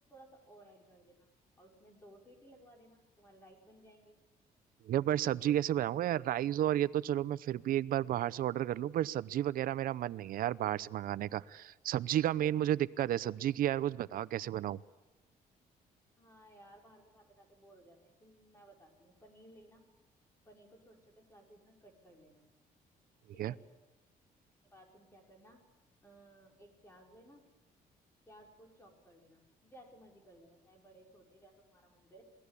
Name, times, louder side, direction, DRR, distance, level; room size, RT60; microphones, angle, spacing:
voice 1, 0.1-1.3 1.6-4.2 5.2-5.3 16.2-19.9 20.5-22.5 23.3-23.6 24.6-25.6 26.0-27.4 28.3-32.2, right 1 dB, 15° left, 1 dB, 5.6 m, -59 dB
voice 2, 4.8-14.8 23.4-23.5, right 12 dB, 70° right, 16 dB, 0.7 m, -32 dB
27.5 x 19.5 x 8.5 m, 1.1 s
cardioid pair, 130°, 15 cm